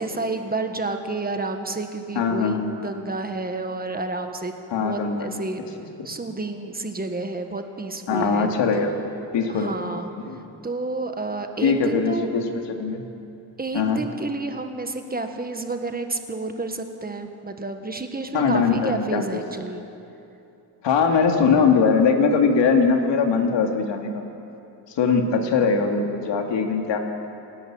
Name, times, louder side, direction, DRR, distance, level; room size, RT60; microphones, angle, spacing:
voice 1, 0.0-5.6 6.0-8.5 9.5-10.1 10.6-12.3 13.6-19.8, right 3 dB, 20° right, 6 dB, 1.4 m, -30 dB
voice 2, 2.2-2.7 4.7-5.3 8.1-8.9 9.3-9.7 10.2-10.4 11.6-13.0 13.7-14.0 18.3-19.4 20.8-24.1 25.0-27.0, left 5 dB, 85° left, 3 dB, 2.3 m, -21 dB
28.5 x 11.0 x 8.7 m, 2.7 s
cardioid pair, 120°, 42 cm